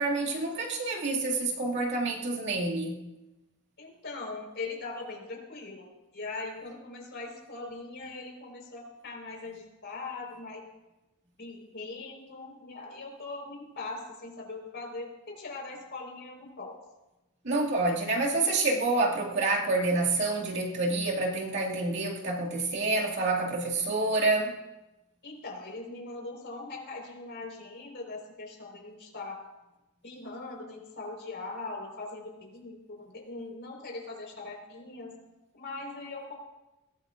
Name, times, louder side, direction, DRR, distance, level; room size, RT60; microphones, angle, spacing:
voice 1, 0.0-3.0 17.4-24.6, right 2 dB, 50° right, -2 dB, 2.2 m, -28 dB
voice 2, 3.8-5.9 6.1-10.7 11.4-16.8 25.2-29.4 30.0-35.1 35.5-36.3, left 3 dB, 50° left, 0 dB, 4.4 m, -41 dB
21.5 x 18.0 x 2.5 m, 1.0 s
head